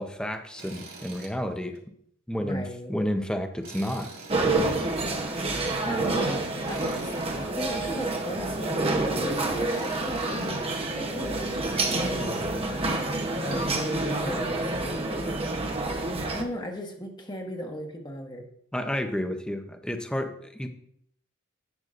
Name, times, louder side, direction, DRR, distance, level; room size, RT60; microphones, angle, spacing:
voice 1, 0.0-1.8 2.3-2.6 2.9-4.1 18.7-20.7, equal, 5° left, 6 dB, 0.6 m, -30 dB
Tools, 0.6-1.3 1.7-1.8 3.6-4.7 6.7-7.4 9.6-10.6, right 4 dB, 75° right, 2.8 m, -45 dB
voice 2, 2.4-2.9 5.7-7.1 7.5-12.5 13.4-15.7 16.3-18.5, equal, 20° left, 2 dB, 1.2 m, -37 dB
sound 1, 4.3-16.4, right 2 dB, 25° right, 0.8 m, -28 dB
10.5 x 8.1 x 2.5 m, 0.71 s
head